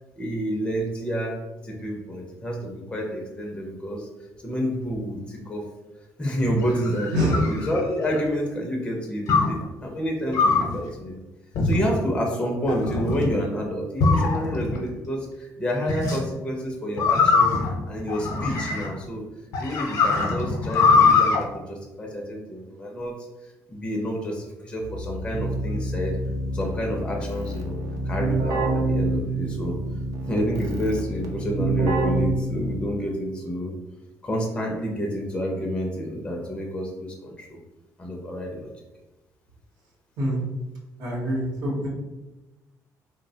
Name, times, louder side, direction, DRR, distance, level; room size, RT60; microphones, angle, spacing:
voice 1, 0.2-4.1 4.4-5.7 6.2-11.2 11.6-17.6 17.9-19.2 19.6-23.1 23.7-26.1 26.5-27.8 28.0-29.8 30.3-33.7 34.2-37.6 38.0-38.7, equal, 15° left, -1 dB, 0.4 m, -29 dB
sound 1, 6.4-8.3 9.3-9.6 10.3-10.8 11.5-12.1 12.7-13.3 14.0-14.8 15.9-16.2 17.0-19.0 19.5-21.4, left 4 dB, 65° left, 0.6 m, -22 dB
voice 2, 7.1-7.4 40.2-40.4 41.0-41.9, equal, 80° right, -4 dB, 0.8 m, -25 dB
Keyboard (musical), 24.8-33.1, right 2 dB, 60° right, 0.4 m, -27 dB
3.1 x 2.0 x 2.6 m, 1.1 s
cardioid pair, 135°, 6 cm